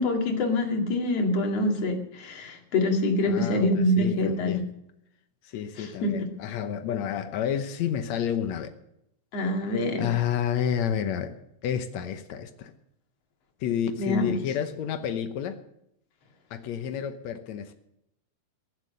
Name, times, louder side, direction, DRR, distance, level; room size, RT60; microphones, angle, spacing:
voice 1, 0.0-4.6 5.8-6.3 9.3-10.1 14.0-14.3, left 1 dB, 45° left, 3.0 m, -25 dB
voice 2, 3.2-4.7 5.4-8.7 10.0-11.4 11.6-12.7 13.6-15.6 16.5-17.7, left 9 dB, 85° left, 1.6 m, -30 dB
22.0 x 7.6 x 6.7 m
omnidirectional pair, 4.5 m